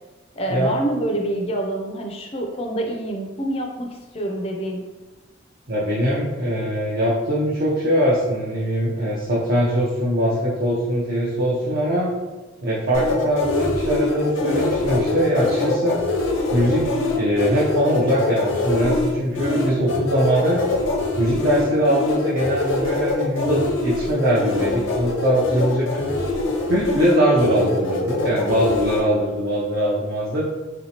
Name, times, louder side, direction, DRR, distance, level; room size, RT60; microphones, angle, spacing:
voice 1, 0.4-4.9, right 1 dB, 30° left, 1 dB, 0.3 m, -26 dB
voice 2, 5.7-12.1 12.6-16.0 16.5-20.6 21.2-26.1 26.7-30.4, equal, 55° right, -7 dB, 0.6 m, -21 dB
sound 1, 12.9-29.0, left 2 dB, 80° left, 0.5 m, -24 dB
3.2 x 2.8 x 2.7 m, 1.2 s
head